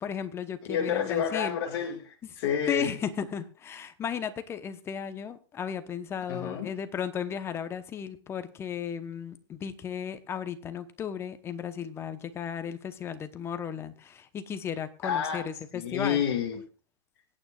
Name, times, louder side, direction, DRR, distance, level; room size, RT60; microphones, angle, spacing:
voice 1, 0.0-1.6 2.2-2.4 2.7-16.2, left 8 dB, 15° left, 1.0 m, -35 dB
voice 2, 0.7-2.9 6.3-6.7 15.0-15.5 15.7-16.6, left 8 dB, 45° left, 2.1 m, -29 dB
24.5 x 9.0 x 2.4 m
hypercardioid pair, 140°, 15 cm